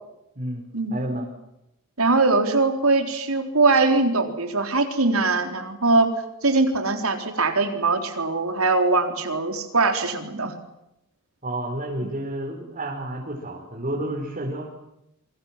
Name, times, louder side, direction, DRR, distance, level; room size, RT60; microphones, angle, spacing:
voice 1, 0.9-1.3 11.4-14.7, right 1 dB, 40° right, -1 dB, 4.9 m, -30 dB
voice 2, 2.0-6.1 6.4-10.5 12.0-12.1, right 3 dB, 85° right, 6 dB, 4.0 m, -21 dB
28.0 x 25.0 x 7.6 m, 0.85 s
head